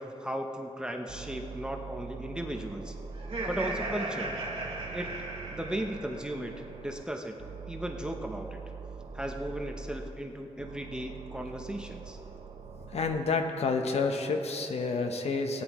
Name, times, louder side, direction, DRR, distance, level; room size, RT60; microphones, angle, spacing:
voice 1, 0.0-2.9 3.4-4.3 4.9-5.1 5.5-6.5 6.8-7.3 7.7-8.6 9.1-12.2, right 1 dB, 5° right, 3 dB, 0.7 m, -36 dB
sound 1, 1.1-3.9 4.2-7.0 7.4-10.1 10.6-13.2, right 5 dB, 75° right, 0.7 m, -43 dB
Laughter, 3.1-6.4, right 2 dB, 60° right, 2.4 m, -36 dB
voice 2, 12.8-15.6, left 4 dB, 70° left, 5 dB, 0.9 m, -29 dB
17.0 x 9.7 x 3.0 m, 2.9 s
wide cardioid pair, 115°, 11 cm